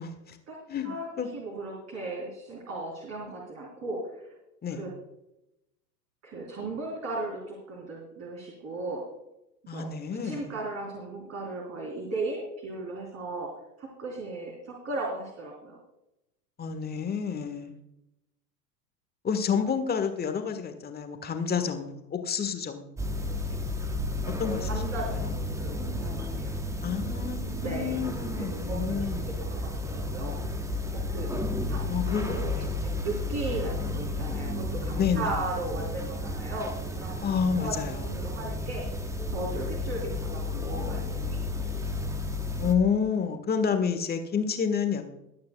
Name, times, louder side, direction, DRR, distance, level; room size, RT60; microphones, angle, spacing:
voice 1, 0.0-0.4 0.7-1.3 4.6-4.8 9.7-10.5 16.6-17.7 19.2-22.9 23.5-23.6 24.4-24.7 25.2-25.3 26.8-29.3 31.9-32.7 35.0-35.3 37.2-38.1 42.6-45.1, left 6 dB, 20° left, 7 dB, 1.5 m, -29 dB
voice 2, 1.3-4.3 4.7-4.9 6.2-9.0 9.7-9.9 10.2-13.5 13.8-15.8 24.4-26.6 27.2-28.0 28.7-30.4 30.9-31.3 31.7-31.8 32.1-37.2 37.5-37.7 38.0-38.8 39.3-41.7, right 2 dB, 30° right, -3 dB, 3.9 m, -36 dB
sound 1, 23.0-42.7, left 1 dB, 5° right, 1.1 m, -32 dB
22.0 x 9.4 x 2.3 m, 0.88 s
figure-of-eight pair, 90°, 50 cm